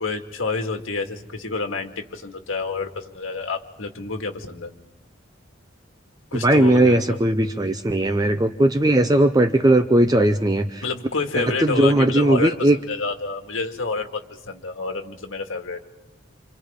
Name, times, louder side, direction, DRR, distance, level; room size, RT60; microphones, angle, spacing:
voice 1, 0.0-4.7 6.3-7.2 10.8-15.8, left 4 dB, 70° left, 4 dB, 2.0 m, -29 dB
voice 2, 6.3-10.8 11.4-12.8, right 1 dB, 20° right, 8 dB, 0.6 m, -18 dB
28.0 x 28.0 x 3.7 m, 1.1 s
head